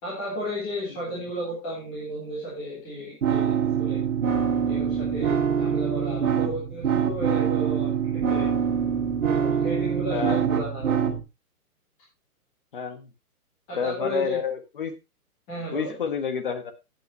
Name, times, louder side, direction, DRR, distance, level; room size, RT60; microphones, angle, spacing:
voice 1, 0.0-4.0 4.7-8.5 9.3-11.1 13.7-14.4 15.5-15.9, equal, 10° left, -7 dB, 3.2 m, -34 dB
sound 1, 3.2-11.2, right 7 dB, 55° right, 2.3 m, -24 dB
voice 2, 12.7-13.1 13.7-14.9 15.7-16.7, left 6 dB, 35° left, 9 dB, 1.5 m, -29 dB
13.0 x 9.3 x 3.0 m, 0.25 s
hypercardioid pair, 180°, 45 cm